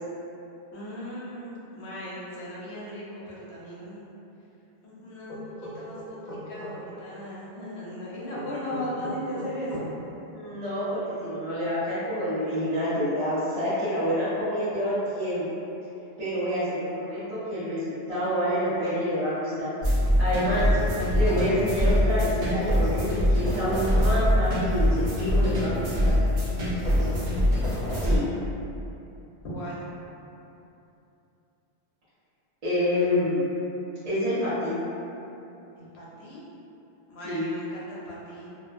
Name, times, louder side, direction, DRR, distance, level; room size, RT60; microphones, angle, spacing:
voice 1, 0.7-4.0 4.8-9.9 26.6-27.2 29.4-29.9 35.8-36.4 37.1-38.5, equal, 90° left, -7 dB, 0.9 m, -37 dB
sound 1, 5.3-6.7 8.3-9.9, right 1 dB, 50° left, 0.8 m, -38 dB
voice 2, 10.3-15.4 16.2-19.7 20.2-20.7 21.1-26.1 28.0-28.2 32.6-33.4 34.0-34.7 37.2-37.5, equal, 40° right, -15 dB, 0.8 m, -27 dB
sound 2, 19.8-28.2, left 1 dB, 70° right, 1.0 m, -24 dB
2.5 x 2.1 x 2.4 m, 2.8 s
omnidirectional pair, 1.1 m